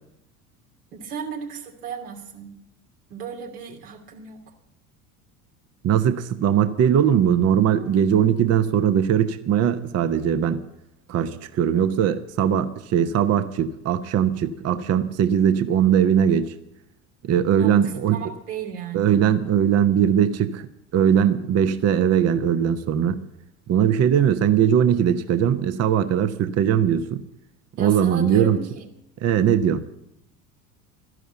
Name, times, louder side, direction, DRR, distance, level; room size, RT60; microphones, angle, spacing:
voice 1, 0.9-2.5 3.1-4.4 17.5-19.2 27.8-28.9, right 6 dB, 75° right, 1 dB, 2.8 m, -35 dB
voice 2, 5.8-10.6 11.1-16.5 17.2-18.2 18.9-20.7 20.9-23.2 23.7-27.2 27.8-28.6 29.2-29.9, right 9 dB, 35° right, 11 dB, 0.9 m, -20 dB
13.5 x 11.0 x 8.0 m, 0.82 s
figure-of-eight pair, 70°, 46 cm